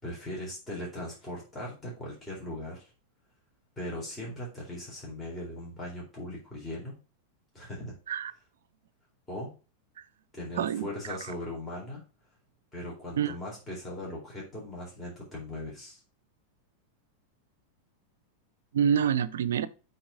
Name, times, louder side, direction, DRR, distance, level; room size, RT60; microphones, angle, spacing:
voice 1, 0.0-2.9 3.8-6.9 7.5-7.9 9.3-9.5 10.3-12.0 12.7-16.0, left 1 dB, 15° left, 4.1 m, -39 dB
voice 2, 10.6-11.2 13.2-13.3 18.7-19.7, right 8 dB, 60° right, 0.6 m, -27 dB
8.7 x 4.2 x 5.0 m
figure-of-eight pair, 90°, 0 cm